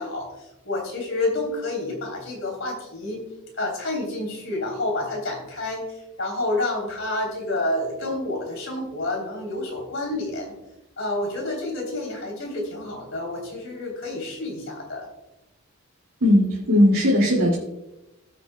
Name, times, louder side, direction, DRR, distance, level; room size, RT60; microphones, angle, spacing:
voice 1, 0.0-3.2 3.6-10.5 11.0-15.1, left 2 dB, 55° left, 0 dB, 3.4 m, -29 dB
voice 2, 16.2-17.5, left 1 dB, 75° right, -5 dB, 2.4 m, -18 dB
18.0 x 8.3 x 2.2 m, 0.96 s
head